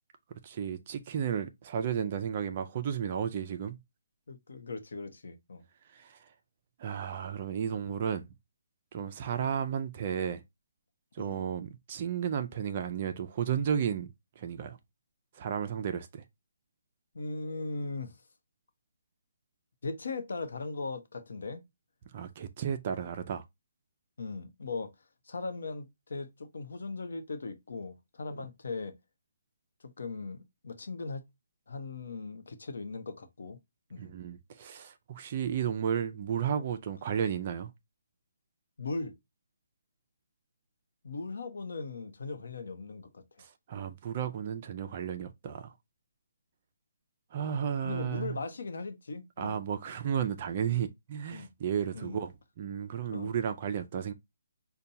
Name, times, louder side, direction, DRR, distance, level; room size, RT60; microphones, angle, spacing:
voice 1, 0.4-3.8 5.9-6.2 6.8-8.3 8.9-10.4 11.1-14.8 15.3-16.2 22.1-23.4 34.0-37.7 43.4-45.7 47.3-48.4 49.4-54.1, right 8 dB, 30° right, 0.4 m, -33 dB
voice 2, 4.3-5.6 11.2-11.4 17.1-18.2 19.8-21.6 24.2-24.9 25.3-28.9 29.8-31.2 31.7-33.6 33.9-34.1 38.8-39.1 41.0-43.2 47.8-49.6 51.3-51.5 51.9-52.2 53.1-53.3, left 3 dB, 70° left, 0.8 m, -38 dB
5.4 x 2.2 x 2.6 m
hypercardioid pair, 165°, 0 cm